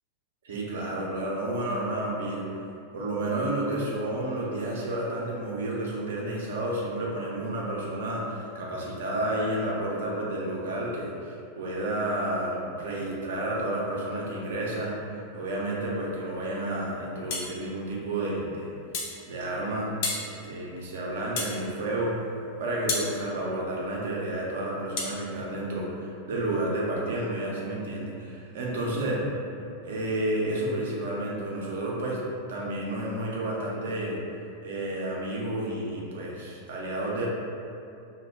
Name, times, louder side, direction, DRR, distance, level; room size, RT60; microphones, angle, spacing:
voice 1, 0.4-2.4 2.9-15.0 15.3-18.7 19.3-22.2 22.6-29.2 29.8-32.2 32.5-34.2 34.6-37.3, right 1 dB, 60° right, -4 dB, 0.5 m, -31 dB
sound 1, 17.3-17.5 18.9-19.2 20.0-20.3 21.4-21.6 22.9-23.1 25.0-25.2, left 3 dB, 50° left, 0.4 m, -30 dB
2.1 x 2.1 x 3.3 m, 2.6 s
figure-of-eight pair, 90°, 0 cm